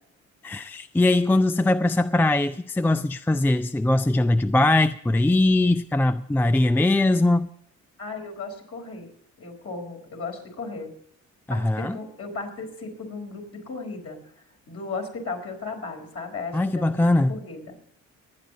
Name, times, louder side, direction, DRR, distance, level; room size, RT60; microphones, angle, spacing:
voice 1, 0.4-7.5 11.5-12.0 16.5-17.3, left 2 dB, 5° left, 0.4 m, -21 dB
voice 2, 8.0-9.1 9.4-10.9 11.5-14.2 14.7-17.8, left 3 dB, 50° left, 4.6 m, -35 dB
22.0 x 9.5 x 4.0 m
cardioid pair, 90°, 30 cm